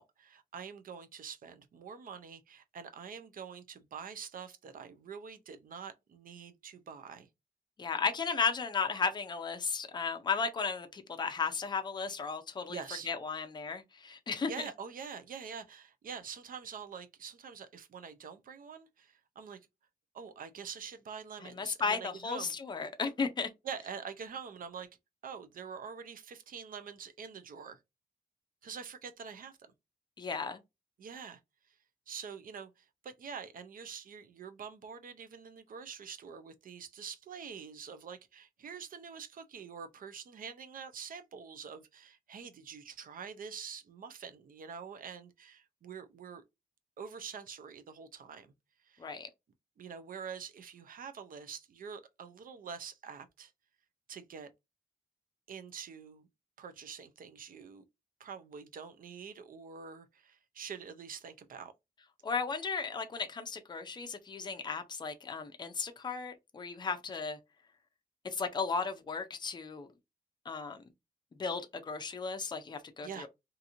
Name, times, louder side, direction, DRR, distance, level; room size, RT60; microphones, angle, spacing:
voice 1, 0.0-7.3 12.7-13.1 14.5-19.6 20.1-22.5 23.6-24.9 25.2-27.8 28.6-29.6 31.0-31.4 32.1-46.4 47.0-48.5 48.8-49.1 49.8-53.5 54.1-54.5 55.5-56.3 56.6-57.8 58.2-61.7 73.0-73.3, right 6 dB, 60° right, 0.5 m, -45 dB
voice 2, 7.8-14.5 21.4-23.5 30.2-30.6 49.0-49.3 62.2-67.4 68.3-69.9 70.5-70.8 71.4-73.3, left 5 dB, 25° left, 0.4 m, -35 dB
2.8 x 2.5 x 2.4 m
wide cardioid pair, 170°, 16 cm